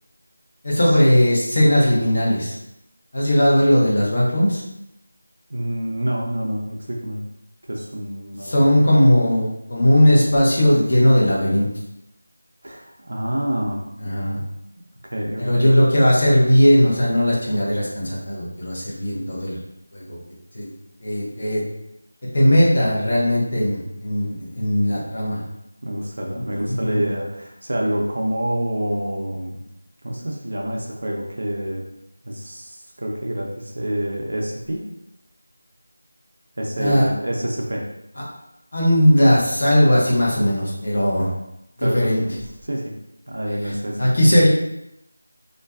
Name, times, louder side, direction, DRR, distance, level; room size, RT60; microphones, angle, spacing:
voice 1, 0.6-2.6 3.1-4.6 8.4-11.7 14.0-14.4 15.4-19.6 19.9-20.2 20.5-20.7 21.0-21.6 22.3-25.4 26.3-27.0 36.8-37.1 38.7-41.3 41.8-42.2 43.6-44.5, equal, 55° left, -5 dB, 0.9 m, -18 dB
voice 2, 5.5-7.2 7.7-8.6 12.6-13.8 15.0-15.7 24.9-25.1 25.8-29.6 30.0-31.8 32.2-34.8 36.6-37.9 41.8-43.0 43.3-44.4, right 1 dB, 65° right, -1 dB, 0.4 m, -27 dB
2.5 x 2.2 x 2.3 m, 0.82 s
figure-of-eight pair, 170°, 0 cm